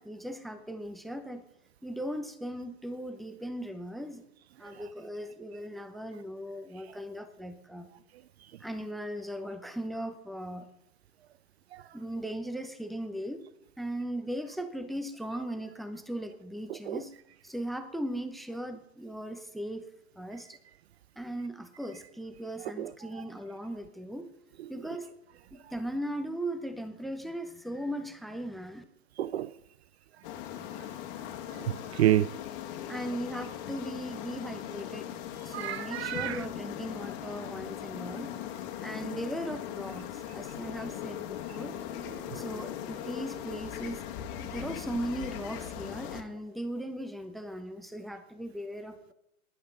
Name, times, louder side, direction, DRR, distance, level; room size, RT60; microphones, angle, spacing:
voice 1, 0.0-1.4 1.8-4.3 4.6-7.9 8.6-10.7 11.9-13.4 13.8-17.1 17.4-19.8 20.2-20.6 21.2-24.3 24.7-25.1 25.5-28.8 32.9-35.1 35.4-38.3 38.8-41.7 42.3-44.0 44.4-49.1, right 1 dB, ahead, 0.7 m, -38 dB
voice 2, 29.2-29.5 31.5-32.3 35.5-36.4, right 13 dB, 50° right, 0.5 m, -29 dB
sound 1, 30.2-46.2, left 10 dB, 40° left, 1.7 m, -39 dB
19.0 x 11.0 x 3.9 m
hypercardioid pair, 115°, 41 cm